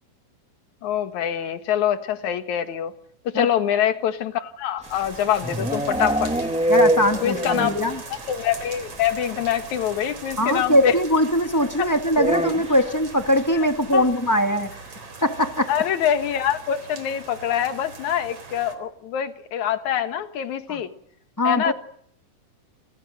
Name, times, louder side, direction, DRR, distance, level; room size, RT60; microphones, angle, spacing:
voice 1, 0.8-2.9 3.2-6.3 7.2-7.7 8.3-11.0 11.8-11.9 13.6-13.7 13.9-14.1 15.7-20.9 21.4-21.7, left 9 dB, 65° left, 8 dB, 2.8 m, -24 dB
sound 1, 4.8-18.8, right 4 dB, 50° right, 4.9 m, -41 dB
sound 2, 4.9-7.9 8.2-8.3 8.6-8.7 8.9-9.1 10.3-10.4 12.1-13.0, right 1 dB, 5° right, 1.2 m, -24 dB
voice 2, 6.7-8.0 10.4-14.7 15.2-15.7 20.7-20.8 21.4-21.7, left 1 dB, 10° left, 5 dB, 0.8 m, -21 dB
29.0 x 27.5 x 6.6 m, 0.67 s
omnidirectional pair, 3.7 m